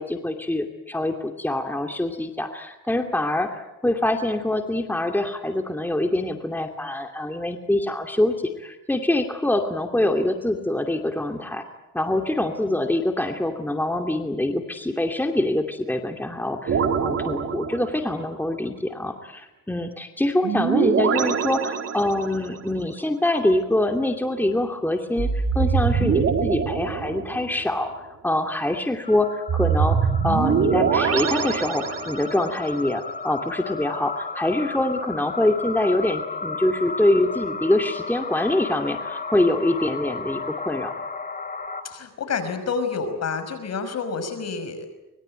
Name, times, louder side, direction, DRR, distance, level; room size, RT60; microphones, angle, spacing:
voice 1, 0.0-11.6 11.9-30.0 30.2-40.9, left 1 dB, 5° left, 4 dB, 2.6 m, -25 dB
sound 1, 16.7-18.2 20.4-22.5 25.2-27.7 29.5-32.5, right 6 dB, 55° right, 3.5 m, -24 dB
sound 2, 29.0-41.8, left 4 dB, 30° left, 3.6 m, -34 dB
voice 2, 41.8-44.9, left 5 dB, 60° left, 9 dB, 5.8 m, -28 dB
25.0 x 22.0 x 9.1 m, 0.99 s
cardioid pair, 90°, 30 cm